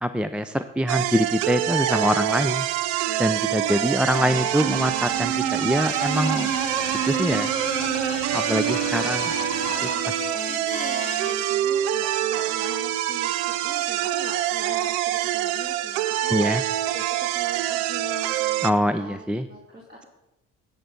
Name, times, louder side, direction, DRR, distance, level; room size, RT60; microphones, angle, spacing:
voice 1, 0.0-2.7 3.2-6.5 7.1-7.5 8.3-9.3 9.8-9.9 16.3-16.6 18.6-19.5, equal, 5° right, 11 dB, 0.5 m, -24 dB
sound 1, 0.9-18.7, right 13 dB, 75° right, 0.5 m, -25 dB
voice 2, 3.0-3.9 8.0-9.2 9.9-16.3 16.9-20.1, equal, 25° right, -3 dB, 2.6 m, -41 dB
sound 2, 4.3-10.0, left 13 dB, 75° left, 0.7 m, -38 dB
sound 3, 5.8-11.3, left 5 dB, 20° left, 0.9 m, -35 dB
13.5 x 8.1 x 3.9 m, 0.93 s
hypercardioid pair, 55°, 37 cm